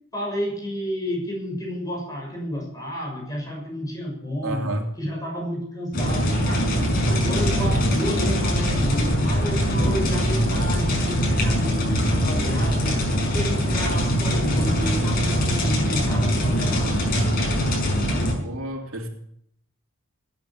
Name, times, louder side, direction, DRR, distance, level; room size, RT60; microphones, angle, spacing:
voice 1, 0.1-4.7 5.0-6.7 7.1-12.9 13.3-17.2, equal, 15° left, 6.3 m, -31 dB
voice 2, 4.4-4.9 18.4-19.1, right 1 dB, 85° right, 3.0 m, -30 dB
sound 1, 5.9-18.3, equal, 45° left, 5.7 m, -22 dB
19.5 x 9.6 x 7.3 m
head